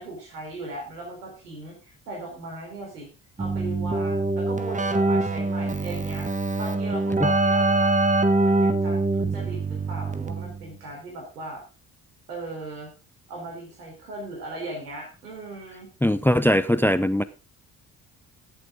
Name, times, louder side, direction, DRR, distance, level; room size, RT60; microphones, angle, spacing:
voice 1, 0.0-3.1 3.4-6.3 6.6-7.9 8.4-11.6 12.3-12.9 13.3-15.9, right 2 dB, 85° right, 1 dB, 4.1 m, -38 dB
Keyboard (musical), 3.4-10.7, right 2 dB, 15° right, 1.6 m, -24 dB
voice 2, 16.0-17.2, equal, 5° left, 15 dB, 0.7 m, -20 dB
17.0 x 7.8 x 3.8 m, 0.32 s
figure-of-eight pair, 45°, 46 cm